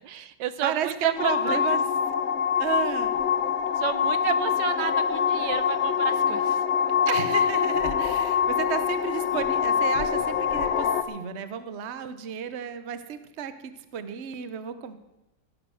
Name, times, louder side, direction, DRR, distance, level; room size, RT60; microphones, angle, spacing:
voice 1, 0.0-1.6 3.8-6.6, right 9 dB, 85° right, 12 dB, 1.5 m, -31 dB
voice 2, 0.6-1.8 2.6-3.1 7.1-15.0, right 8 dB, 45° right, 11 dB, 1.0 m, -32 dB
sound 1, 1.2-11.0, left 7 dB, 50° left, 0.9 m, -24 dB
16.5 x 9.5 x 6.3 m, 0.94 s
omnidirectional pair, 1.9 m